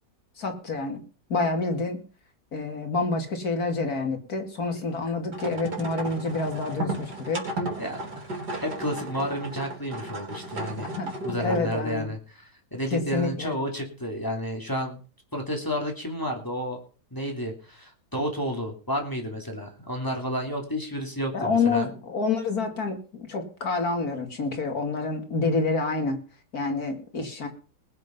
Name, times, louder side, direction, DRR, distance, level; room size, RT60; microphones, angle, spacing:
voice 1, 0.4-1.0 1.3-2.0 2.5-7.4 11.0-11.1 11.4-12.1 12.9-13.6 21.3-23.0 23.3-26.2 26.5-27.5, left 3 dB, 60° left, 4 dB, 2.9 m, -27 dB
sound 1, 5.3-11.8, right 2 dB, 70° right, 4.3 m, -34 dB
voice 2, 7.8-8.3 8.6-10.9 11.2-15.0 15.3-16.8 17.1-21.9, equal, 10° left, 1 dB, 3.2 m, -31 dB
19.5 x 7.9 x 5.5 m, 0.37 s
omnidirectional pair, 1.8 m